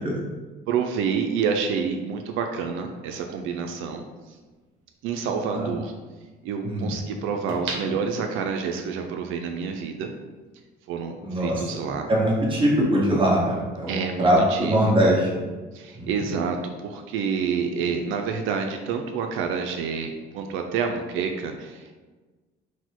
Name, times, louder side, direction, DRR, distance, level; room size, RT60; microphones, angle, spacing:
voice 1, 0.7-4.0 5.0-5.9 6.4-10.1 10.9-12.1 13.9-14.8 15.7-22.0, right 6 dB, 90° right, 4 dB, 0.4 m, -28 dB
sound 1, 3.9-4.0 7.5-8.8 9.3-9.4, right 2 dB, 70° right, 0.9 m, -34 dB
voice 2, 11.2-11.6 12.1-15.4 16.0-16.1, right 1 dB, 25° right, -4 dB, 1.2 m, -22 dB
4.1 x 2.2 x 4.5 m, 1.3 s
cardioid pair, 110°, 20 cm